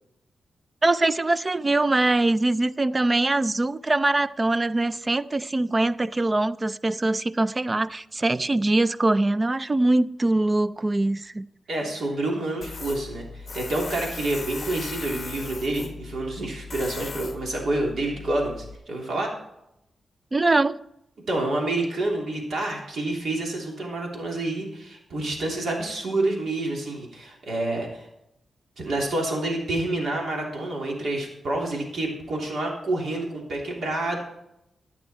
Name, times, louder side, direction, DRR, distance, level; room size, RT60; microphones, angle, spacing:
voice 1, 0.8-11.5 20.3-20.8, right 2 dB, 20° right, 0.4 m, -23 dB
voice 2, 11.7-19.3 21.3-28.1 28.8-34.2, right 2 dB, 65° right, 3.2 m, -28 dB
Tools, 12.6-18.8, left 4 dB, 35° left, 0.9 m, -38 dB
13.0 x 9.9 x 4.4 m
wide cardioid pair, 165°, 0 cm